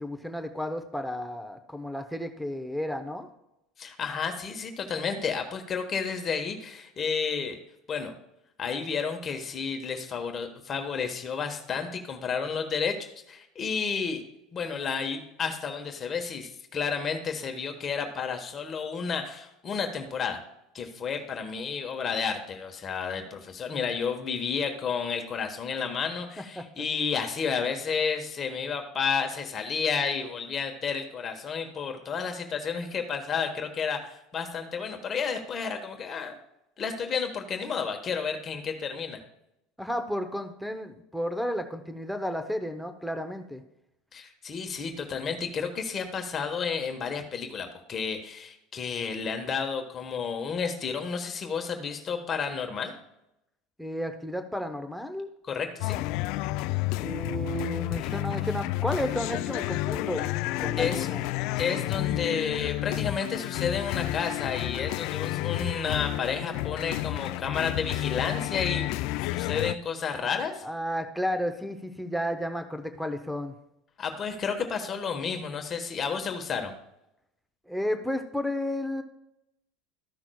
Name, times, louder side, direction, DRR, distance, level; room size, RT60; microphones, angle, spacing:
voice 1, 0.0-3.3 26.6-26.7 39.8-43.6 53.8-55.3 57.0-60.3 60.6-61.3 70.6-73.5 77.7-79.0, equal, ahead, 8 dB, 0.7 m, -32 dB
voice 2, 3.8-7.6 7.9-8.1 8.6-13.0 13.3-14.2 14.5-20.4 20.7-36.4 36.8-39.2 44.1-52.9 55.5-56.0 60.8-61.1 61.6-68.9 69.3-70.6 74.0-76.7, left 6 dB, 30° left, 4 dB, 1.3 m, -31 dB
sound 1, 55.8-69.7, left 17 dB, 65° left, 0.3 m, -30 dB
14.5 x 5.9 x 2.3 m, 0.85 s
supercardioid pair, 125°, 0 cm